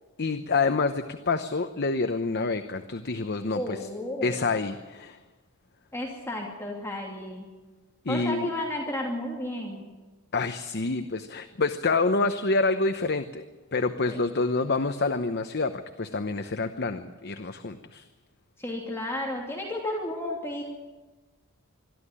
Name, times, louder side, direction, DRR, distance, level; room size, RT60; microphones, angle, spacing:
voice 1, 0.2-3.8 4.2-5.2 8.0-8.5 10.3-13.4 13.7-15.7 16.0-18.1, left 3 dB, 50° left, 8 dB, 0.9 m, -27 dB
voice 2, 3.5-4.3 5.9-7.5 8.1-9.8 14.1-14.2 18.6-20.6, left 1 dB, 10° left, -1 dB, 2.8 m, -32 dB
22.5 x 13.5 x 9.8 m, 1.2 s
head